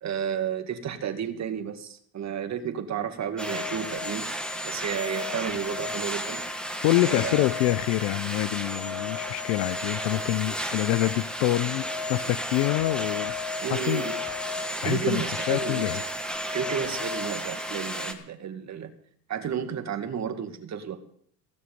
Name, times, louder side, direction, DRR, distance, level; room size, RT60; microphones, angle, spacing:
voice 1, 0.0-4.3 4.6-6.4 7.0-7.5 13.6-14.2 14.8-16.1 16.5-18.9 19.3-21.0, right 8 dB, 35° right, 1.8 m, -32 dB
sound 1, 3.4-18.1, left 1 dB, ahead, 1.6 m, -32 dB
voice 2, 6.8-13.3 13.7-14.1 14.8-16.0, left 18 dB, 65° left, 0.7 m, -26 dB
16.0 x 6.3 x 9.3 m
supercardioid pair, 100°, 50 cm